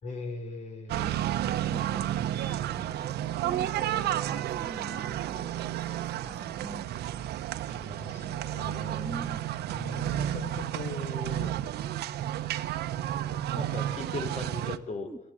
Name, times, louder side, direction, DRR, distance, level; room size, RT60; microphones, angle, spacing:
voice 1, 0.0-1.3 7.7-9.2 9.7-11.6 13.3-15.1, left 3 dB, 45° left, 4 dB, 5.7 m, -39 dB
voice 2, 0.9-6.9 9.0-9.4 13.5-13.7 15.0-15.2, right 2 dB, 10° right, 4 dB, 3.7 m, -44 dB
sound 1, 0.9-14.8, right 12 dB, 75° right, 1.3 m, -32 dB
28.5 x 18.0 x 8.4 m, 0.83 s
cardioid pair, 110°, 17 cm